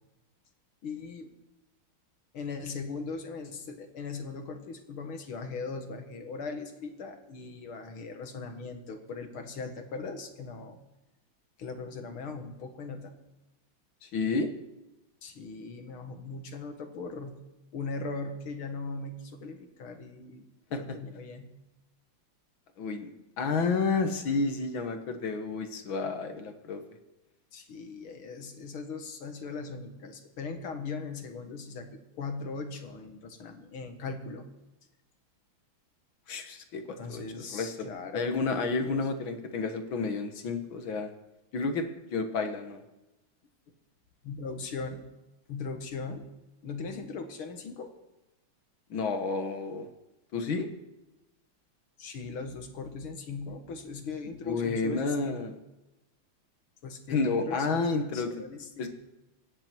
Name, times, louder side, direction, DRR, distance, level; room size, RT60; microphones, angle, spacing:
voice 1, 0.8-1.3 2.3-10.8 11.6-13.2 15.2-17.4 17.7-20.5 20.7-21.5 27.5-34.5 37.0-38.4 38.8-39.1 44.2-45.0 45.5-46.3 46.6-47.9 52.0-55.4 56.8-58.9, left 4 dB, 90° left, 6 dB, 2.5 m, -39 dB
voice 2, 14.0-14.5 20.7-20.8 22.8-23.1 23.4-26.8 36.3-37.8 38.1-41.1 41.5-42.8 48.9-49.9 50.3-50.7 54.4-55.5 57.1-58.4 58.8-58.9, left 4 dB, 70° left, 6 dB, 2.2 m, -30 dB
25.0 x 9.8 x 4.5 m, 0.99 s
omnidirectional pair, 2.3 m